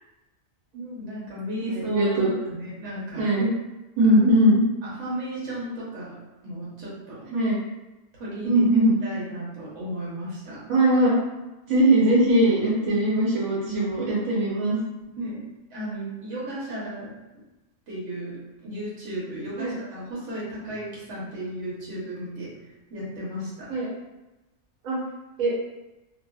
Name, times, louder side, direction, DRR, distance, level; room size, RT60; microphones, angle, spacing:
voice 1, 0.7-2.1 2.5-3.2 4.1-4.2 4.8-6.2 6.4-7.2 8.2-8.6 9.0-10.6 12.8-12.9 15.2-17.1 17.9-22.5 22.9-23.7, equal, 65° right, -7 dB, 1.3 m, -34 dB
voice 2, 1.6-2.4 3.2-3.5 4.0-4.6 7.3-7.6 8.4-9.0 10.7-11.1 11.7-14.8 19.6-19.7 23.7-23.9 24.8-25.0 25.4-25.5, right 1 dB, 90° right, -6 dB, 1.2 m, -20 dB
2.9 x 2.5 x 2.3 m, 1.0 s
omnidirectional pair, 1.4 m